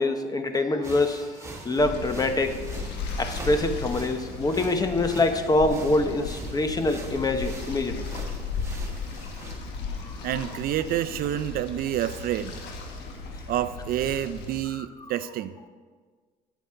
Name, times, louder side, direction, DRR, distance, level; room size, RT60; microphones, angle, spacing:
voice 1, 0.0-2.6 3.2-8.1 10.0-10.2 14.7-15.1, left 2 dB, 20° left, 8 dB, 0.8 m, -25 dB
sound 1, 0.8-9.5, right 2 dB, 15° right, 1.4 m, -43 dB
sound 2, 1.8-14.6, left 4 dB, 80° left, 1.3 m, -35 dB
voice 2, 10.2-12.6 13.5-15.5, right 11 dB, 60° right, 13 dB, 0.4 m, -28 dB
9.1 x 8.2 x 4.4 m, 1.5 s
cardioid pair, 110°, 17 cm